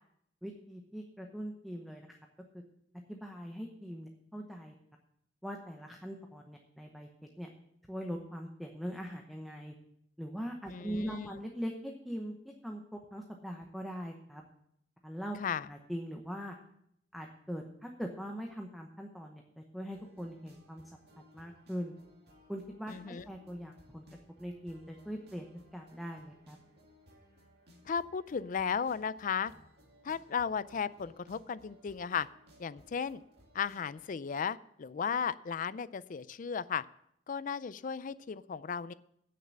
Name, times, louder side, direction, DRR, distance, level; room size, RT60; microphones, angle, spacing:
voice 1, 0.4-2.2 3.1-4.7 5.4-7.1 7.4-7.5 7.9-9.7 10.2-14.4 15.0-16.5 17.1-20.8 21.3-21.9 22.5-24.0 24.4-25.5 25.7-26.6, equal, ahead, 2 dB, 0.9 m, -41 dB
voice 2, 10.7-11.3 15.4-15.7 22.9-23.2 27.9-29.5 30.0-32.3 32.6-33.2 33.5-36.8 37.3-38.9, left 6 dB, 45° left, 17 dB, 0.4 m, -35 dB
sound 1, 19.9-34.1, equal, 60° right, 2.2 m, -61 dB
8.8 x 6.7 x 8.5 m, 0.74 s
head